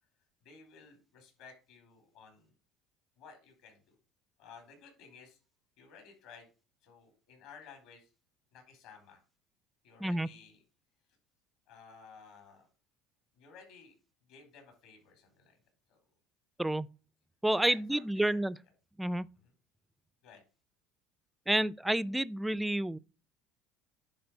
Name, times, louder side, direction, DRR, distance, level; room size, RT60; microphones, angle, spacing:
voice 1, 0.4-2.5 3.2-3.9 4.4-5.4 5.8-6.5 6.8-8.1 8.5-9.2 9.8-10.6 11.7-12.7 13.3-13.9 14.3-15.6 15.9-16.0 17.6-18.4 19.4-19.5 20.2-20.4, left 6 dB, 75° left, 4.3 m, -55 dB
voice 2, 16.6-16.9 17.4-18.6 19.0-19.3 21.5-23.0, right 1 dB, 5° right, 0.3 m, -29 dB
10.5 x 3.9 x 6.5 m
cardioid pair, 125°, 0 cm